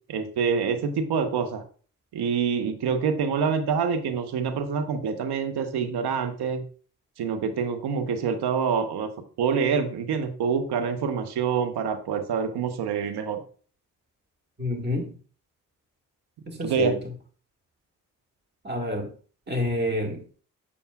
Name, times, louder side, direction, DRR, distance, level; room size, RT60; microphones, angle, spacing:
voice 1, 0.1-1.6 2.1-6.6 7.2-9.1 9.4-13.4 16.6-16.9, right 6 dB, 70° right, 8 dB, 1.0 m, -26 dB
voice 2, 14.6-15.1 16.5-17.0 18.6-19.1 19.5-20.2, left 1 dB, 25° right, 1 dB, 1.8 m, -28 dB
6.9 x 6.8 x 2.3 m, 0.42 s
hypercardioid pair, 40°, 41 cm